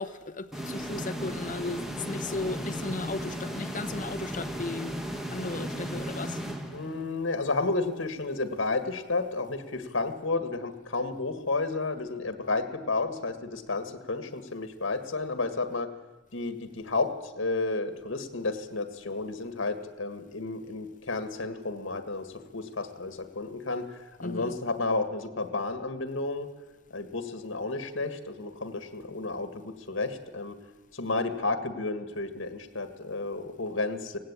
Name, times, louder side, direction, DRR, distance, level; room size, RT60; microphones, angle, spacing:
voice 1, 0.0-5.0 5.3-6.4 24.2-24.5, left 3 dB, 40° left, 8 dB, 1.0 m, -35 dB
sound 1, 0.5-7.3, equal, ahead, 1.7 m, -35 dB
voice 2, 6.7-15.9 16.3-26.5 26.9-30.6 30.9-34.2, left 3 dB, 85° left, 9 dB, 1.8 m, -32 dB
17.5 x 17.0 x 8.9 m, 1.1 s
head